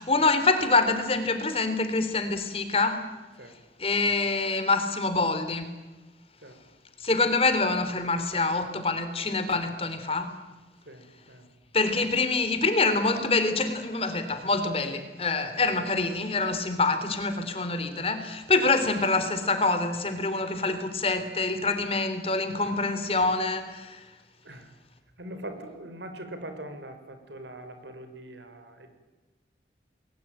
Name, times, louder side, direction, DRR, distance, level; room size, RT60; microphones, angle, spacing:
voice 1, 0.0-3.1 3.8-5.7 7.0-10.4 11.7-24.0, left 3 dB, 35° left, 8 dB, 3.3 m, -26 dB
voice 2, 10.9-11.5 18.6-18.7 22.6-22.8 24.4-24.7 25.2-28.9, right 1 dB, 90° right, 7 dB, 5.2 m, -42 dB
29.5 x 21.5 x 9.0 m, 1.2 s
head